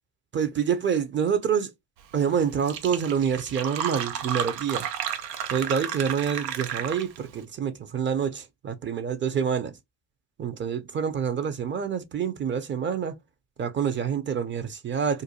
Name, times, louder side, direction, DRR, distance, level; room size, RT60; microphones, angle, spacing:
voice 1, 0.3-1.7 2.1-4.9 5.5-9.7 10.4-13.1 13.6-15.2, right 7 dB, 25° right, 0.5 m, -27 dB
Fill (with liquid), 2.2-2.3 2.5-7.3, right 9 dB, 90° right, 0.6 m, -32 dB
2.5 x 2.2 x 2.7 m
hypercardioid pair, 70°, 48 cm